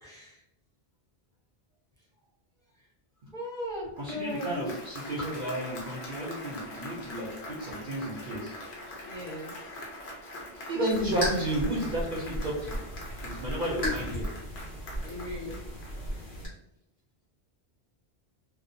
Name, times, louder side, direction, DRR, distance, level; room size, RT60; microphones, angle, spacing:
voice 1, 0.0-0.4 3.3-4.6 9.0-9.5 13.8-14.2 15.0-15.5, left 1 dB, 5° left, -6 dB, 0.6 m, -37 dB
Applause, 3.8-16.4, left 1 dB, 80° left, 1.0 m, -43 dB
voice 2, 4.0-8.5 10.7-12.8 13.2-14.2, right 1 dB, 60° right, -4 dB, 0.7 m, -32 dB
sound 1, 10.9-16.5, equal, 60° left, 1.1 m, -36 dB
2.6 x 2.0 x 2.5 m, 0.84 s
omnidirectional pair, 1.1 m